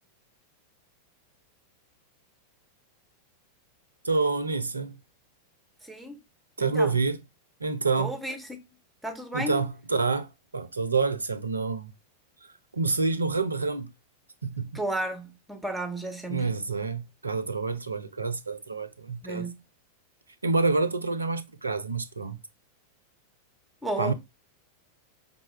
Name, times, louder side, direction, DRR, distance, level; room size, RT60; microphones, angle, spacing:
voice 1, 4.0-5.0 6.6-7.2 7.6-8.2 9.3-11.9 12.7-13.9 14.4-14.8 16.3-19.5 20.4-22.4 24.0-24.1, right 4 dB, 80° right, 0.4 m, -27 dB
voice 2, 5.8-6.2 6.6-6.9 8.0-8.6 9.0-9.6 14.7-16.5 19.2-19.6 23.8-24.1, right 1 dB, 5° right, 0.9 m, -33 dB
5.1 x 2.2 x 3.1 m
figure-of-eight pair, 90°, 0 cm